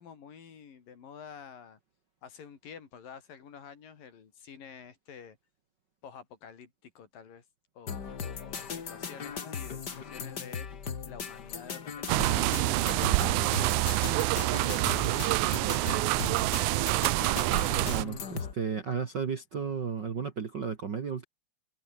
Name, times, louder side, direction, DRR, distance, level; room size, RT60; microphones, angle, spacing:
voice 1, 0.0-1.8 2.2-5.4 6.0-7.4 7.7-10.7 11.1-12.8 13.1-17.1, left 7 dB, 75° left, 5.0 m, -49 dB
sound 1, 7.9-18.5, left 6 dB, 40° left, 1.8 m, -38 dB
sound 2, 12.1-18.0, right 21 dB, 85° right, 1.7 m, -27 dB
voice 2, 17.9-21.2, right 6 dB, 45° right, 1.5 m, -33 dB
omnidirectional pair, 4.0 m